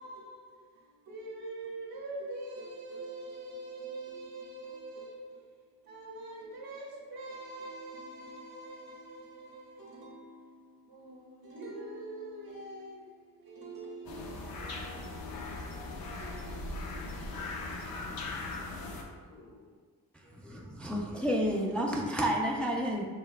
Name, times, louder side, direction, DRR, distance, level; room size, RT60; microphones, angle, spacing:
voice 1, 0.0-17.4, right 2 dB, 80° right, -3 dB, 1.2 m, -45 dB
Japan Kashiwa Speaker Broadcast in a Rural Town with Birds, 14.1-19.0, left 2 dB, 85° left, 0.7 m, -39 dB
voice 2, 18.6-19.7 20.2-21.5, left 1 dB, 50° left, -8 dB, 1.2 m, -58 dB
voice 3, 20.3-23.0, equal, 5° left, -1 dB, 0.4 m, -30 dB
7.1 x 3.2 x 2.2 m, 1.5 s
wide cardioid pair, 115°, 35 cm